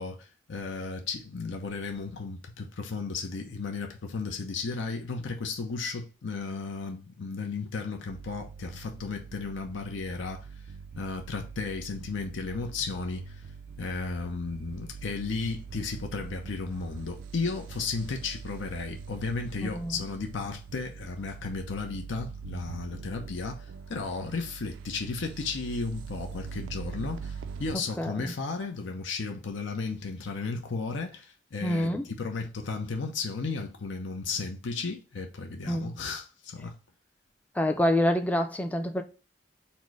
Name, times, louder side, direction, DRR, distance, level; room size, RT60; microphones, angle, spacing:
voice 1, 0.0-10.5 11.0-13.4 13.8-31.9 32.2-36.8, left 4 dB, 75° left, 0.6 m, -34 dB
sound 1, 8.1-27.7, right 5 dB, 80° right, 0.4 m, -43 dB
voice 2, 19.6-20.0 28.0-28.3 31.6-32.1 35.7-35.9 37.5-39.0, left 1 dB, 10° left, 0.4 m, -27 dB
4.2 x 2.1 x 4.6 m
head